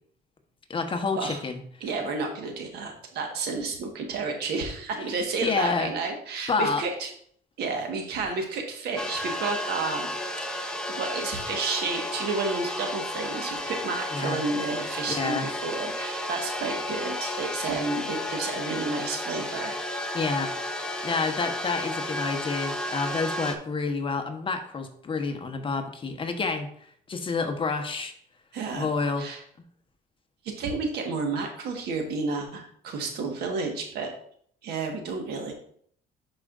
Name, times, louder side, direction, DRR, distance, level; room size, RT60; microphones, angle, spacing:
voice 1, 0.7-1.6 5.4-5.9 6.5-6.8 14.1-14.4 15.1-15.5 20.1-20.5 21.0-26.7 27.1-28.1 28.7-29.3, left 4 dB, 30° left, 5 dB, 1.0 m, -28 dB
voice 2, 1.8-7.1 7.6-10.1 10.4-19.8 28.5-28.9 29.2-29.4 30.4-34.1 34.6-35.5, right 4 dB, 70° right, 3 dB, 1.5 m, -31 dB
sound 1, 9.0-23.5, left 1 dB, 5° left, 0.9 m, -33 dB
10.5 x 4.8 x 2.5 m, 0.62 s
cardioid pair, 110°, 17 cm